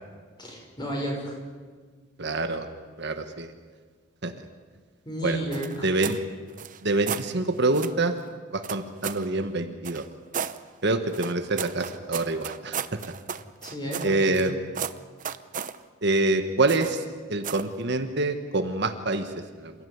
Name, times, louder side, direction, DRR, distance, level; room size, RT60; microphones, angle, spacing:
voice 1, 0.4-1.4 5.0-6.0 13.6-14.5, equal, 20° left, 0 dB, 6.2 m, -33 dB
voice 2, 2.2-2.7 3.0-3.5 4.2-4.3 5.2-5.4 5.8-6.2 6.8-8.1 8.5-10.0 10.8-13.0 14.0-14.5 16.0-17.0 17.3-19.3 19.6-19.7, right 2 dB, 55° right, 7 dB, 1.5 m, -26 dB
sound 1, 5.5-6.2 6.5-7.3 7.7-8.0 8.6-9.3 9.8-10.6 11.1-14.5 14.7-15.8 16.7-17.0 17.4-17.7, right 7 dB, 40° right, 0.8 m, -34 dB
28.0 x 15.5 x 9.6 m, 1.5 s
head